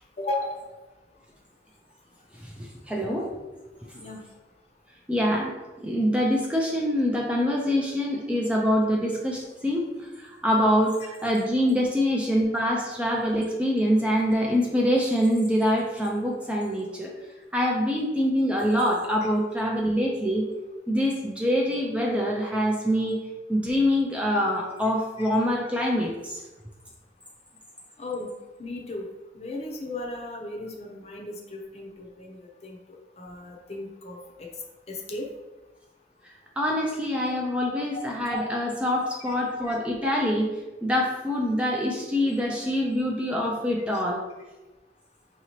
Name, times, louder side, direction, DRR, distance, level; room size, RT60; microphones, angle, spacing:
voice 1, 0.2-0.6 3.9-4.2 25.2-25.3 28.0-28.3 28.6-29.1 29.3-34.5 34.9-35.3 37.9-38.0 38.6-38.7 39.6-39.7, left 2 dB, 35° left, 0 dB, 0.6 m, -36 dB
voice 2, 2.4-3.3 5.1-5.5 5.8-17.1 17.5-20.4 20.9-23.2 23.5-26.4 36.6-40.5 40.8-44.2, equal, 5° right, -2 dB, 0.3 m, -25 dB
4.7 x 2.8 x 3.0 m, 1.2 s
head